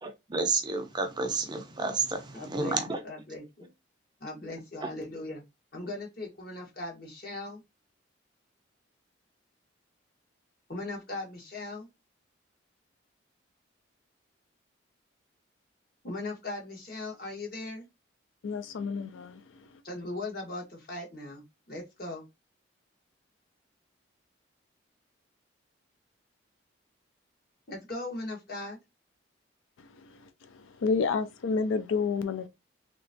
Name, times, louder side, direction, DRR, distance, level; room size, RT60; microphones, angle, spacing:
voice 1, 0.0-3.0 4.8-4.9, right 3 dB, 20° right, 0.5 m, -30 dB
voice 2, 2.3-3.7 4.2-5.4 5.7-7.6 10.7-11.9 16.0-17.9 19.8-22.2 27.7-28.8, left 2 dB, 50° left, 1.3 m, -39 dB
voice 3, 18.4-19.4 30.0-30.2 30.5-32.5, left 4 dB, 90° left, 0.4 m, -29 dB
3.3 x 2.9 x 2.6 m
head